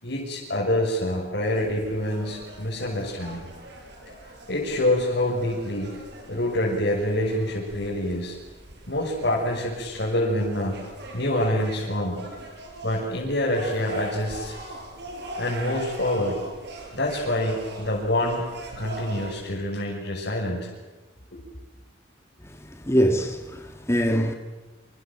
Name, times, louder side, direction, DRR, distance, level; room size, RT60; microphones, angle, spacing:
voice 1, 0.0-3.5 4.5-5.9 6.2-8.4 8.9-10.7 11.1-12.2 12.8-14.6 15.4-16.4 16.9-18.4 18.7-20.7 21.3-21.4, left 1 dB, 60° left, 6.6 m, -26 dB
sound 1, 1.4-19.6, right 1 dB, 60° right, 7.3 m, -41 dB
voice 2, 22.4-24.3, equal, 15° left, 2.2 m, -24 dB
28.0 x 28.0 x 7.6 m
head